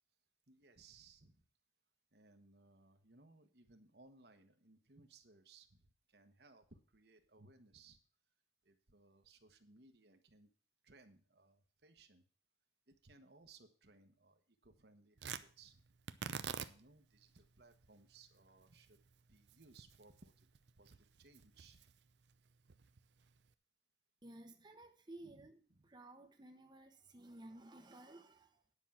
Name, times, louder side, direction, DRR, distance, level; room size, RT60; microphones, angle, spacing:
voice 1, 0.5-1.5 2.1-8.0 8.6-10.5 10.8-12.2 12.9-15.8 16.5-19.0 19.3-20.5 20.8-21.8 25.2-25.4 25.7-25.9, right 3 dB, 65° right, 1.2 m, -64 dB
Tearing, 15.2-23.5, right 7 dB, 80° right, 0.6 m, -50 dB
voice 2, 24.2-28.7, right 1 dB, 25° right, 1.0 m, -56 dB
10.0 x 6.2 x 7.2 m
head